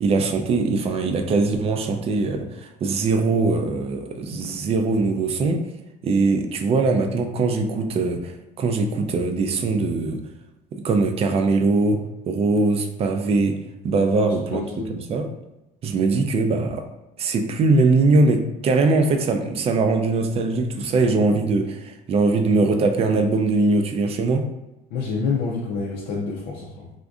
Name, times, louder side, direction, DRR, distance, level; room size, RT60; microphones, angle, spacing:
voice 1, 0.0-5.7 6.0-10.2 10.7-13.6 13.8-14.6 14.9-15.3 15.8-16.8 17.2-24.5, right 3 dB, 40° right, 6 dB, 0.4 m, -21 dB
voice 2, 14.2-15.0 24.9-26.9, left 4 dB, 90° left, -4 dB, 0.6 m, -28 dB
3.7 x 2.5 x 2.3 m, 0.99 s
cardioid pair, 120°, 16 cm